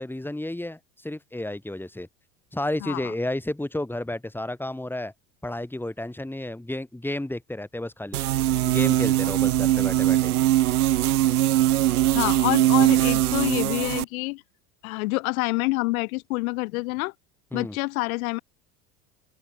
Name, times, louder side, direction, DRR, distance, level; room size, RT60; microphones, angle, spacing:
voice 1, 0.0-2.1 2.5-5.1 5.4-8.2 8.7-10.3 17.5-17.8, left 1 dB, 5° left, 6.5 m, -32 dB
voice 2, 2.8-3.1 12.1-14.4 14.8-17.1 17.5-18.4, left 23 dB, 70° left, 7.2 m, -27 dB
sound 1, 8.1-14.0, right 14 dB, 85° right, 1.4 m, -21 dB
open air
hypercardioid pair, 95°, 43 cm